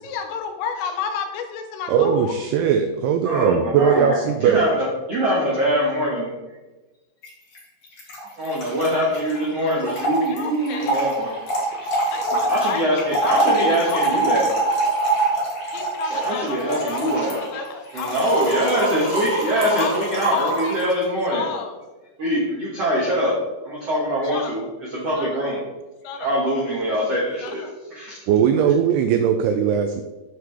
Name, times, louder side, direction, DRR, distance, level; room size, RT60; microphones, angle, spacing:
voice 1, 0.0-2.4 8.8-9.1 10.2-11.0 12.0-14.4 15.7-17.1 17.4-18.1 18.7-18.9 19.7-20.8 21.3-21.7 23.3-23.4 24.3-24.7 25.2-25.4 26.0-26.4 27.4-27.7, left 6 dB, 85° left, 6 dB, 3.2 m, -32 dB
voice 2, 1.9-4.7 28.3-30.0, right 8 dB, 90° right, 7 dB, 2.3 m, -19 dB
voice 3, 3.2-4.1 4.4-6.3 8.4-11.3 11.8-12.0 12.5-14.5 16.1-17.4 17.9-21.5 22.2-23.3 23.6-24.6 24.9-25.6 26.2-27.6 27.9-28.1, equal, 70° right, -6 dB, 1.4 m, -23 dB
Trickle dribble / Fill (with liquid), 7.2-7.3 7.6-7.7 7.8-20.9, right 2 dB, 45° left, 2.8 m, -24 dB
7.9 x 7.6 x 3.3 m, 1.1 s
omnidirectional pair, 5.2 m